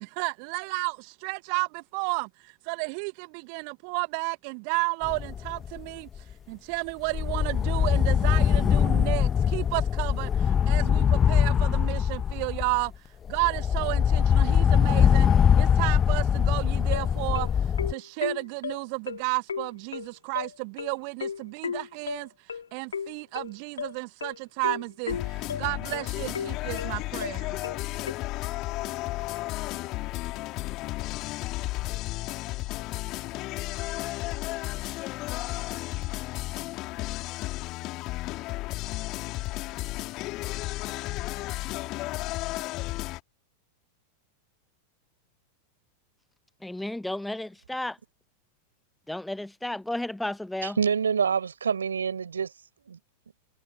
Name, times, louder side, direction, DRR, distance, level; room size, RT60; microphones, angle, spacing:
voice 1, 0.0-15.3 15.6-27.6, right 40 dB or more, 45° right, 1.0 m, -32 dB
sound 1, 5.0-5.8 6.2-6.3 7.1-12.9 13.3-17.9, left 8 dB, 25° left, 1.0 m, -22 dB
sound 2, 16.9-28.1, left 6 dB, 70° left, 3.0 m, -35 dB
sound 3, 25.1-43.2, left 19 dB, 40° left, 3.5 m, -33 dB
voice 2, 46.6-48.0 49.1-50.8, left 1 dB, 5° left, 0.8 m, -33 dB
voice 3, 50.6-52.5 52.9-53.0, right 6 dB, 70° right, 5.0 m, -26 dB
figure-of-eight pair, 90°, 0 cm